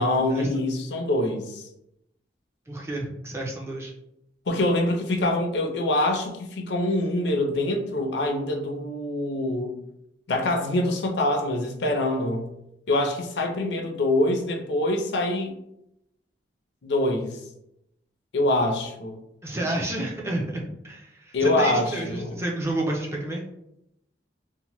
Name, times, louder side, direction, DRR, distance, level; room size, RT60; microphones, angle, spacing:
voice 1, 0.0-1.7 4.5-9.8 10.3-12.5 12.9-15.6 16.8-17.4 18.3-19.2 21.3-22.4, left 1 dB, 75° left, 3 dB, 0.5 m, -25 dB
voice 2, 2.7-3.9 19.4-23.4, right 1 dB, 15° right, -1 dB, 0.4 m, -30 dB
2.8 x 2.1 x 3.0 m, 0.81 s
head